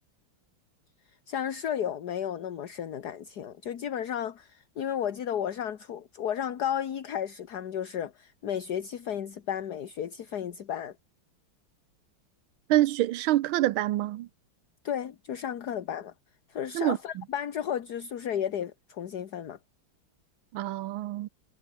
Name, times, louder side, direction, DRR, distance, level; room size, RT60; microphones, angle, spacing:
voice 1, 1.3-10.9 14.8-16.1 16.5-19.6, left 9 dB, 55° left, 1.7 m, -33 dB
voice 2, 12.7-14.3 16.7-17.0 20.5-21.3, right 15 dB, 85° right, 1.5 m, -26 dB
omnidirectional pair, 2.2 m